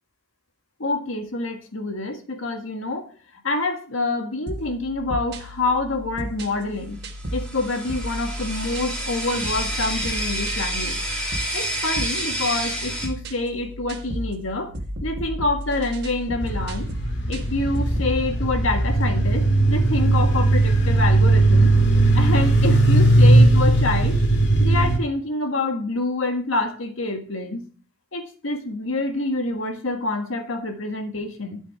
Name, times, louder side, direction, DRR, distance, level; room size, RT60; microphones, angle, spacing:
voice 1, 0.8-3.1 3.4-7.0 7.3-11.0 11.5-14.7 15.0-16.9 17.3-21.7 22.1-24.2 24.6-27.6 28.1-31.6, left 2 dB, 85° left, 5 dB, 1.7 m, -27 dB
sound 1, 4.5-18.2, equal, 55° right, 1.3 m, -34 dB
sound 2, 7.2-13.1, right 1 dB, 5° left, 3.0 m, -29 dB
sound 3, 16.4-25.0, right 2 dB, 60° left, 2.1 m, -18 dB
12.0 x 5.2 x 4.8 m, 0.39 s
head